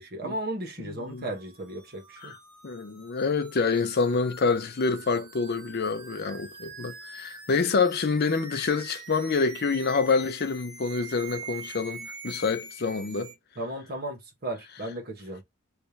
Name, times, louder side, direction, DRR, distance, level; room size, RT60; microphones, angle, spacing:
voice 1, 0.0-2.3 13.6-15.4, right 1 dB, 45° right, 1.1 m, -35 dB
voice 2, 0.8-1.3 2.2-2.4 2.6-13.3, left 4 dB, 45° left, 0.6 m, -27 dB
sound 1, 1.1-13.3, right 3 dB, 80° right, 1.6 m, -44 dB
3.4 x 3.2 x 2.7 m
head